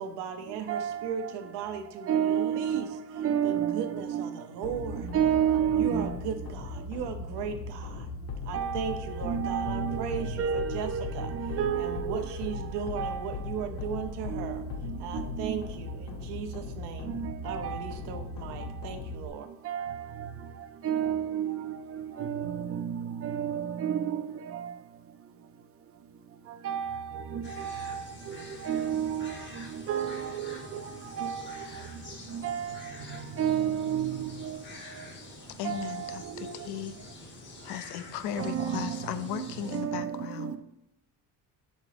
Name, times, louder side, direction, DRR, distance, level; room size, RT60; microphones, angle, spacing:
voice 1, 0.0-2.9 3.4-5.1 5.7-8.1 8.4-14.6 15.0-17.2 17.4-19.5, right 7 dB, 80° right, 0.9 m, -37 dB
voice 2, 0.7-1.3 2.1-4.3 4.6-6.2 8.5-12.6 13.0-13.2 14.3-15.6 17.1-17.8 19.6-20.3 20.8-24.7 26.6-30.8 31.2-31.7 32.3-32.8 33.1-34.6 35.6-36.5 38.4-40.6, right 9 dB, 35° right, 0.4 m, -31 dB
sound 1, 4.6-19.3, left 4 dB, 60° left, 1.1 m, -38 dB
sound 2, 27.4-39.8, left 2 dB, 30° left, 0.8 m, -47 dB
voice 3, 35.6-37.0 37.6-40.6, left 9 dB, 80° left, 0.6 m, -36 dB
5.3 x 3.9 x 5.0 m
cardioid pair, 160°, 40 cm